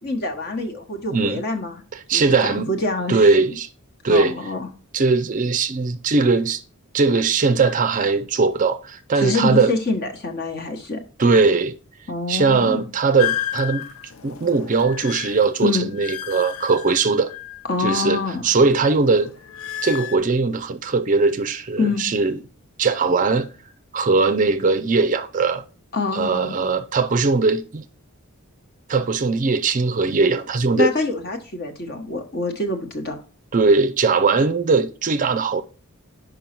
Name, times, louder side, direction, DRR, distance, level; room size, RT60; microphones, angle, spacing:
voice 1, 0.0-1.7 2.1-2.3 2.7-3.1 4.1-4.7 9.2-11.0 12.1-12.8 15.6-15.9 17.7-18.5 21.8-22.0 25.9-26.5 30.8-33.2, left 3 dB, 45° left, 1.1 m, -25 dB
voice 2, 1.1-1.5 1.9-2.7 3.1-3.7 4.0-4.4 4.9-6.6 6.9-9.7 11.2-11.8 12.3-13.9 14.2-17.3 17.8-19.3 19.8-22.4 22.8-23.5 23.9-25.6 26.1-27.8 28.9-30.9 33.5-35.6, right 4 dB, 35° right, 0.4 m, -20 dB
sound 1, 13.2-17.9 18.2-20.2, left 12 dB, 65° left, 0.6 m, -32 dB
5.4 x 5.3 x 4.4 m
head